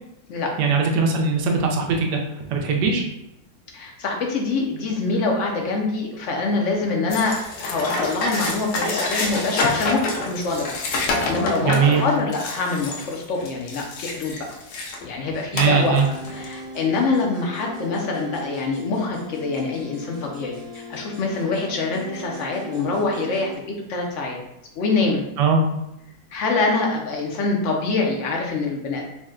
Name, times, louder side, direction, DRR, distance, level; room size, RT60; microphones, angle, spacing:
voice 1, 0.6-2.2 2.5-3.0 11.6-12.0 15.5-16.1 25.4-25.6, right 5 dB, 75° right, 2 dB, 1.2 m, -20 dB
voice 2, 3.7-10.0 10.2-10.8 11.2-11.7 12.0-14.4 15.0-16.0 16.3-24.4 24.8-25.3 26.3-29.0, left 3 dB, 70° left, 0 dB, 0.7 m, -25 dB
sound 1, 7.1-15.1 15.5-16.5, left 2 dB, 85° left, 1.3 m, -27 dB
sound 2, 15.3-23.6, equal, 55° right, 1.3 m, -38 dB
3.8 x 2.1 x 3.6 m, 0.86 s
omnidirectional pair, 1.9 m